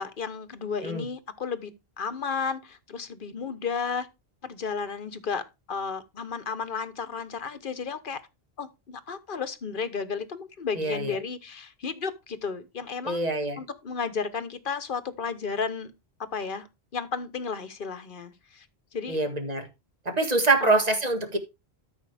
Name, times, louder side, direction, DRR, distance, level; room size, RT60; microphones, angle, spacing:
voice 1, 0.0-1.7 2.0-4.1 4.4-8.2 8.6-13.2 13.6-15.9 16.3-16.7 16.9-18.7 18.9-19.2 20.6-20.8, left 5 dB, 55° left, 1.1 m, -33 dB
voice 2, 10.7-11.2 13.0-13.6 19.1-19.7 20.0-21.4, right 2 dB, 40° right, 1.8 m, -25 dB
13.0 x 6.2 x 3.4 m
omnidirectional pair, 1.1 m